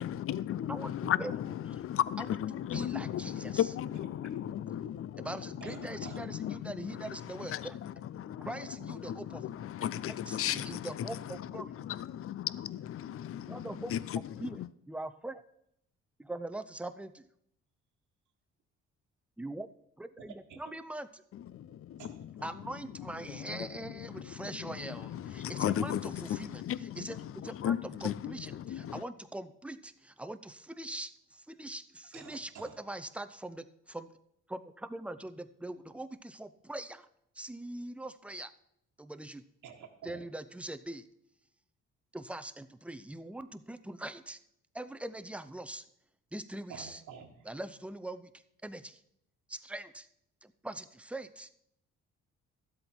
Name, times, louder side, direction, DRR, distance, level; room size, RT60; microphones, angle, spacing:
voice 1, 0.0-1.5 1.8-5.3 6.0-7.0 7.5-8.5 9.1-11.1 11.8-14.0 14.6-14.7 21.5-22.0 23.3-23.6 24.3-24.5 24.8-26.0 26.3-27.1 27.6-28.3 28.7-29.0, left 11 dB, 50° left, 18 dB, 0.5 m, -35 dB
voice 2, 0.7-1.3 1.7-1.8 2.2-3.7 5.2-7.8 8.4-9.5 9.8-11.7 13.5-13.9 14.4-15.4 16.2-17.3 19.4-19.7 20.0-21.2 22.4-34.1 34.5-37.1 37.4-38.5 39.0-39.4 40.0-41.0 42.1-44.4 44.7-45.8 46.3-47.0 47.5-48.3 48.6-49.0 49.5-50.1 50.4-51.5, right 1 dB, 5° right, 10 dB, 0.6 m, -42 dB
voice 3, 5.6-6.3 20.2-20.7 22.0-22.6 32.1-33.0 39.6-40.3 46.7-47.5, right 7 dB, 80° right, 3 dB, 1.5 m, -50 dB
12.5 x 7.9 x 4.5 m, 0.75 s
cardioid pair, 90°, 30 cm